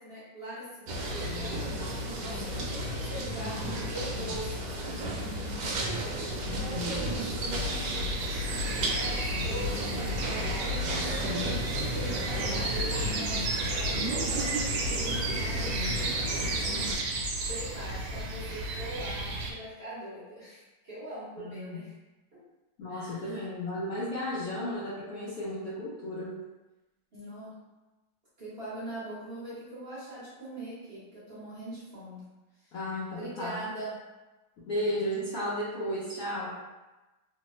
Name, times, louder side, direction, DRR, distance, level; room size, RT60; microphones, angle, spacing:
voice 1, 0.0-1.8 2.2-4.7 6.5-7.2 7.8-8.4 8.8-11.0 11.7-13.4 13.7-15.8 16.4-17.1 17.5-21.9 22.9-23.5 27.1-27.6 28.4-32.2 32.6-32.7 33.2-33.9, right 1 dB, 40° right, -11 dB, 1.1 m, -42 dB
sound 1, 0.9-17.0, equal, 75° right, 1.2 m, -33 dB
voice 2, 5.4-5.9 21.4-21.8 22.8-26.4 32.7-33.6 34.6-36.5, left 1 dB, 70° left, -8 dB, 0.8 m, -34 dB
sound 2, 7.5-19.5, right 2 dB, 90° right, 1.3 m, -33 dB
3.1 x 2.1 x 3.0 m, 1.1 s
omnidirectional pair, 2.0 m